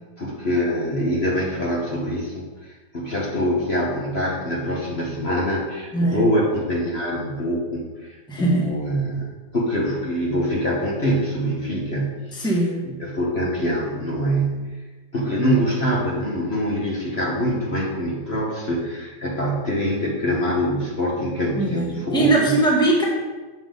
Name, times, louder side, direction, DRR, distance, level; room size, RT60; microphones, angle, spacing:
voice 1, 0.2-12.5 13.0-14.7 15.1-22.6, equal, 40° left, -4 dB, 1.5 m, -24 dB
voice 2, 5.9-6.2 8.3-8.8 12.3-12.8 21.6-23.0, right 2 dB, 5° left, -3 dB, 1.4 m, -21 dB
8.1 x 7.1 x 3.8 m, 1.3 s
omnidirectional pair, 1.8 m